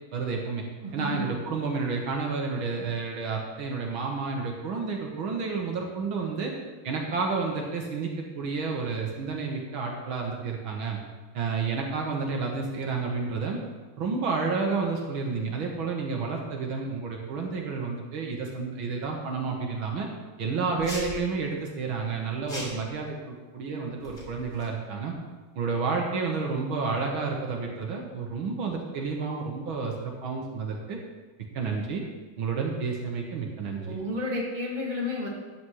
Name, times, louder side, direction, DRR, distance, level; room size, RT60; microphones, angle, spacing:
voice 1, 0.1-0.6 0.9-6.5 6.8-11.0 11.3-13.6 14.0-20.1 20.4-25.1 25.6-31.0 31.5-32.0 32.4-34.0, right 4 dB, 75° right, 0 dB, 2.1 m, -30 dB
voice 2, 0.8-1.2 33.8-35.3, left 2 dB, 20° right, -3 dB, 2.2 m, -31 dB
sound 1, 20.8-21.2 22.5-22.9 24.0-24.6, equal, 20° left, 3.4 m, -39 dB
13.5 x 10.5 x 3.2 m, 1.3 s
omnidirectional pair, 2.3 m